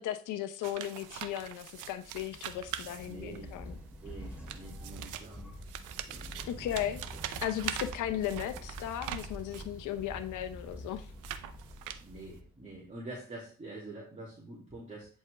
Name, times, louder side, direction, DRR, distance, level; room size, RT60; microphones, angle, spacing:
voice 1, 0.0-3.7 6.5-7.0 7.4-11.1, left 11 dB, 90° left, 11 dB, 0.8 m, -36 dB
sound 1, 0.6-3.5 4.3-9.8 10.4-12.4, right 11 dB, 90° right, 0.7 m, -42 dB
sound 2, 1.8-12.9, equal, 5° right, 2.8 m, -47 dB
voice 2, 3.1-3.5 4.0-5.5 6.1-6.5 12.0-15.1, right 2 dB, 25° right, -5 dB, 2.6 m, -46 dB
10.5 x 4.5 x 3.4 m, 0.40 s
cardioid pair, 90°, 30 cm